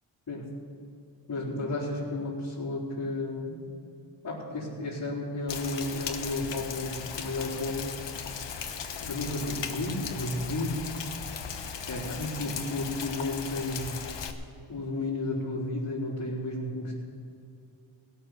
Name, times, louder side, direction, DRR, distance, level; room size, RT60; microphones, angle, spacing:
voice 1, 1.3-3.6 4.2-7.9 9.0-10.8 11.9-13.9 14.7-16.9, left 2 dB, 45° left, -12 dB, 4.4 m, -32 dB
Rain, 5.5-14.3, left 6 dB, 60° left, 1.2 m, -37 dB
17.0 x 7.0 x 9.5 m, 2.5 s
cardioid pair, 90°, 47 cm